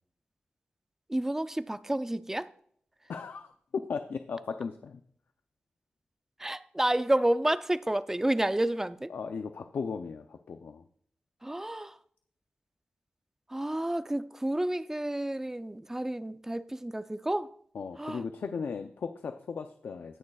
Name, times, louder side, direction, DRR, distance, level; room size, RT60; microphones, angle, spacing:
voice 1, 1.1-2.5 6.4-9.1 11.4-12.0 13.5-17.5 18.0-18.2, right 1 dB, 10° right, 0.5 m, -30 dB
voice 2, 3.1-5.0 9.1-10.8 17.7-20.2, left 5 dB, 90° left, 0.5 m, -37 dB
18.5 x 6.6 x 2.4 m
wide cardioid pair, 95°, 3 cm